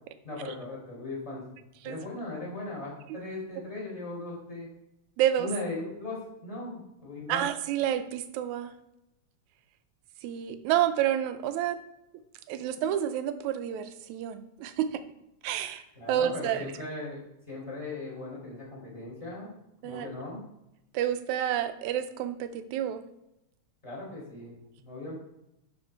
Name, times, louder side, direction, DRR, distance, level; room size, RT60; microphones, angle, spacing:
voice 1, 0.2-1.6 1.8-4.7 5.4-7.5 15.9-17.2 17.5-19.5 19.8-20.4 23.8-25.1, left 2 dB, 10° left, -6 dB, 4.0 m, -38 dB
voice 2, 5.2-5.5 7.3-8.7 10.2-11.8 12.5-15.0 15.4-15.8 16.1-16.7 19.8-20.1 20.9-23.0, right 11 dB, 80° right, 10 dB, 2.1 m, -29 dB
11.5 x 5.2 x 4.6 m, 0.86 s
omnidirectional pair, 3.4 m